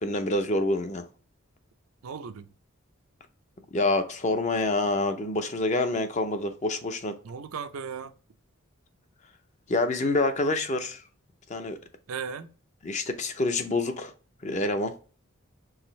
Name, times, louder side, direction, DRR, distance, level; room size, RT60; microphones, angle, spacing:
voice 1, 0.0-1.1 3.7-7.2 9.7-11.0 11.5-11.8 12.8-14.1 14.4-14.9, left 2 dB, 35° left, 0.5 m, -27 dB
voice 2, 2.0-2.5 7.2-8.1 12.1-12.5, right 6 dB, 90° right, 0.5 m, -36 dB
4.8 x 3.3 x 3.1 m
head